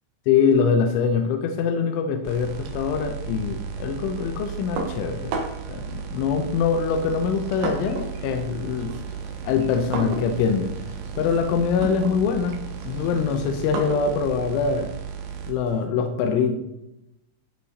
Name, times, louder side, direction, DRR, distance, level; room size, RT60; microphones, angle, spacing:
voice 1, 0.3-5.3 5.7-9.0 9.4-10.7 11.2-12.6 12.8-14.9 15.5-16.6, left 6 dB, 85° left, 5 dB, 3.3 m, -23 dB
sound 1, 2.3-15.5, right 7 dB, 90° right, 3.8 m, -35 dB
sound 2, 4.8-5.8 6.7-8.2 8.5-15.8, right 3 dB, 70° right, 3.4 m, -34 dB
sound 3, 6.9-13.9, left 1 dB, 30° right, 2.4 m, -45 dB
13.5 x 8.2 x 4.2 m, 0.90 s
omnidirectional pair, 5.5 m